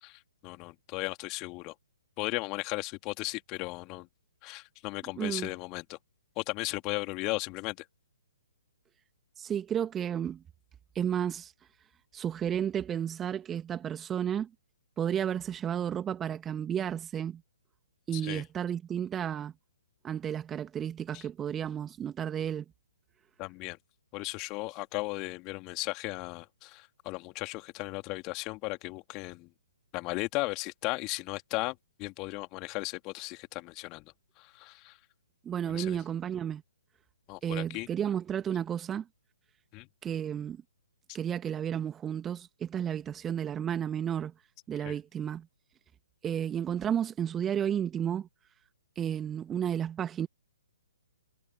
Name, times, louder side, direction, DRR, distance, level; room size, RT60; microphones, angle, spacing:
voice 1, 0.0-1.7 2.2-4.1 4.4-6.0 6.4-7.8 18.1-18.4 21.1-21.3 23.4-23.8 24.1-29.5 29.9-35.0 35.7-36.0 37.3-37.9 39.7-39.9 41.1-41.2 44.8-45.0, left 24 dB, 25° left, 2.7 m, -36 dB
voice 2, 5.2-5.5 9.4-10.4 11.0-11.5 12.1-14.5 15.0-17.4 18.1-19.5 20.0-22.7 35.4-36.6 37.4-39.1 40.0-40.6 41.1-44.3 44.7-45.5 46.2-48.3 49.0-50.3, right 9 dB, 15° right, 2.0 m, -32 dB
figure-of-eight pair, 125°, 0 cm